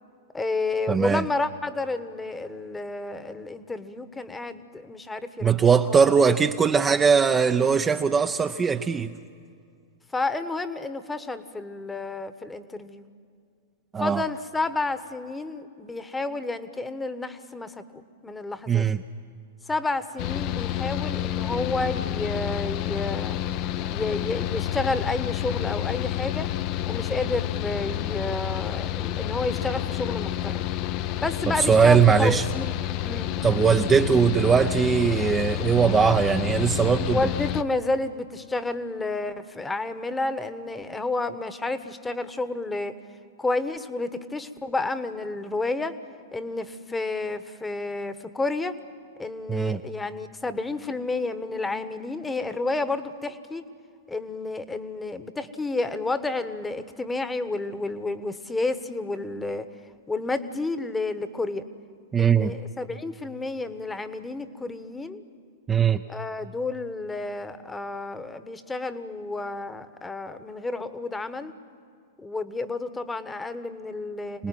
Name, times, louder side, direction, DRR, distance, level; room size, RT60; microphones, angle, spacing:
voice 1, 0.3-5.5 10.1-13.0 14.0-18.9 19.7-23.4 23.9-26.5 26.9-30.7 31.2-32.7 33.0-33.3 37.1-43.0 43.4-45.9 46.3-48.7 49.2-53.6 54.1-59.7 60.1-61.6 62.2-65.2 66.1-71.5 72.2-74.5, left 3 dB, 10° left, 12 dB, 1.2 m, -30 dB
voice 2, 0.9-1.2 5.4-9.1 13.9-14.2 18.7-19.0 31.6-32.4 33.4-37.2 49.5-49.8 62.1-62.5 65.7-66.0 74.4-74.5, right 6 dB, 20° right, 6 dB, 0.7 m, -20 dB
Mechanical fan, 20.2-37.6, left 12 dB, 45° left, 0.7 m, -29 dB
26.0 x 19.0 x 9.4 m, 2.3 s
hypercardioid pair, 105°, 0 cm